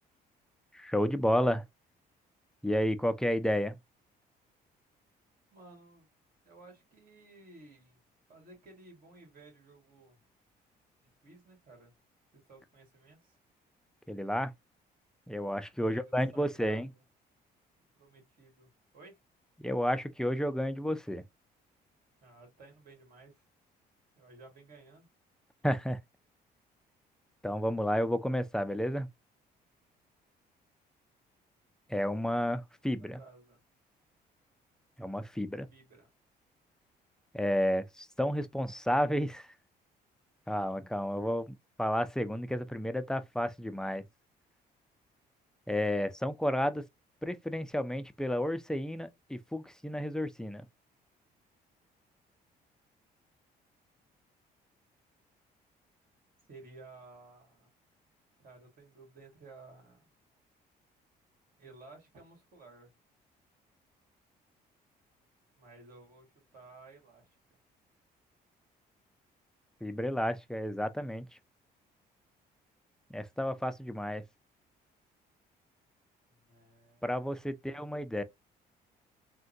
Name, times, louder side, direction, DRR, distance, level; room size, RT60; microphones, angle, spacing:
voice 1, 0.7-1.6 2.6-3.8 14.1-14.5 15.3-16.9 19.6-21.2 25.6-26.0 27.4-29.1 31.9-33.2 35.0-35.7 37.3-39.5 40.5-44.1 45.7-46.8 47.2-50.7 69.8-71.3 73.1-74.2 77.0-78.2, equal, 5° left, 0.4 m, -31 dB
voice 2, 5.5-6.1 6.5-8.0 8.3-10.2 11.0-11.9 12.3-13.4 15.8-16.8 18.0-19.2 22.2-23.5 24.2-25.1 32.8-33.6 35.7-36.1 56.5-57.7 58.4-60.1 61.6-63.0 65.6-67.4 76.3-77.8, right 3 dB, 60° right, 2.0 m, -55 dB
3.5 x 2.2 x 2.6 m
cardioid pair, 100°, 17 cm